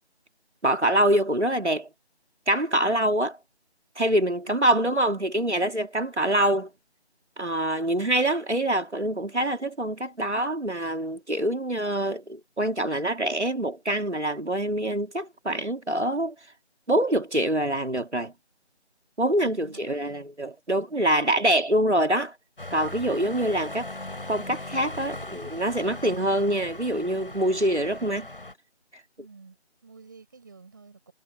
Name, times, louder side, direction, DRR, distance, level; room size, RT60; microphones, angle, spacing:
voice 1, 0.6-1.9 2.5-3.4 4.0-6.7 7.4-16.3 16.9-18.3 19.2-22.3 22.7-23.9 24.3-28.3, right 1 dB, 90° right, 3.0 m, -25 dB
voice 2, 4.6-4.9 19.3-20.2 29.2-31.1, right 4 dB, 20° right, 5.4 m, -49 dB
sound 1, 22.6-28.5, left 2 dB, 55° left, 7.1 m, -39 dB
figure-of-eight pair, 170°, 34 cm